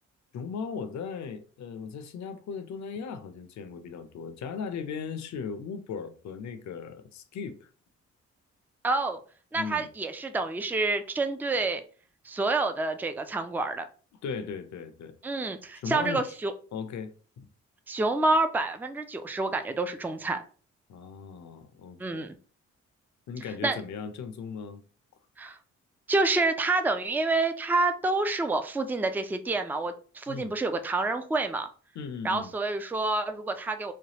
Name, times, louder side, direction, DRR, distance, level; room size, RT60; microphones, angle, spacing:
voice 1, 0.3-7.7 9.5-9.9 14.2-15.2 15.7-16.2 16.7-17.5 20.9-22.3 23.3-24.8 30.3-30.6 31.9-32.5, left 6 dB, 65° left, 0.6 m, -37 dB
voice 2, 8.8-9.2 9.5-11.8 12.2-13.8 15.2-16.5 17.9-20.4 22.0-22.4 23.6-23.8 25.4-25.6 26.1-31.7 32.2-33.9, right 3 dB, 5° right, 0.4 m, -28 dB
3.3 x 2.3 x 2.9 m
supercardioid pair, 60°, 30 cm